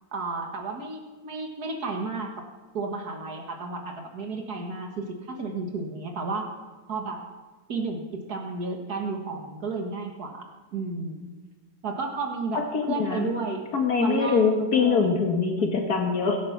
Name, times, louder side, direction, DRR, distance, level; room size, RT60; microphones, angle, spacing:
voice 1, 0.1-2.4 2.7-6.5 6.9-7.2 7.7-10.5 10.7-11.3 11.8-13.6 14.0-15.2 15.6-15.7, right 3 dB, 70° right, 2 dB, 2.1 m, -32 dB
voice 2, 12.7-13.3 13.7-16.4, left 5 dB, 70° left, 2 dB, 2.0 m, -23 dB
22.5 x 8.8 x 5.9 m, 1.2 s
omnidirectional pair, 1.7 m